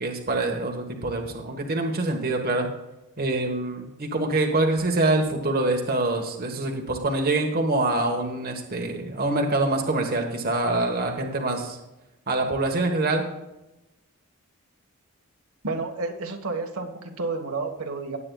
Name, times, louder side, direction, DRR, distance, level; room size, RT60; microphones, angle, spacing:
voice 1, 0.0-2.7 3.2-11.8 12.3-13.2, right 2 dB, 45° right, 2 dB, 1.3 m, -25 dB
voice 2, 15.6-18.2, right 3 dB, 70° right, 3 dB, 1.5 m, -30 dB
18.0 x 8.6 x 2.3 m, 1.0 s
head